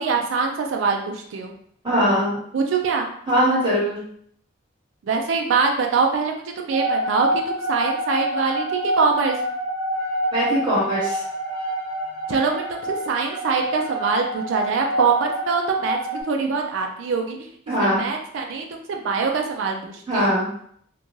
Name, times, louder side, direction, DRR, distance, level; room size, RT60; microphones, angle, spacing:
voice 1, 0.0-1.5 2.5-3.1 5.0-9.4 12.3-17.5 17.8-20.4, right 5 dB, 70° right, 2 dB, 0.4 m, -24 dB
voice 2, 1.8-2.3 3.3-4.0 10.3-11.2 17.7-18.0 20.1-20.5, equal, 25° right, -8 dB, 1.2 m, -20 dB
sound 1, 6.7-16.2, right 1 dB, 90° left, 0.6 m, -27 dB
2.5 x 2.2 x 3.0 m, 0.65 s
head